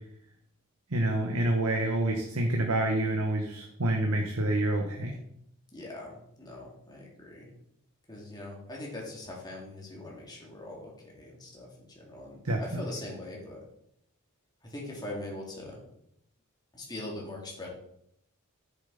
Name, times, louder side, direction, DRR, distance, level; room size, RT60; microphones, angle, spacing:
voice 1, 0.9-5.2 12.4-12.8, right 1 dB, 70° right, 2 dB, 1.2 m, -28 dB
voice 2, 5.7-7.5 8.1-13.6 14.6-15.8 16.7-17.7, left 1 dB, 20° left, -3 dB, 2.6 m, -42 dB
9.9 x 7.2 x 4.1 m, 0.73 s
head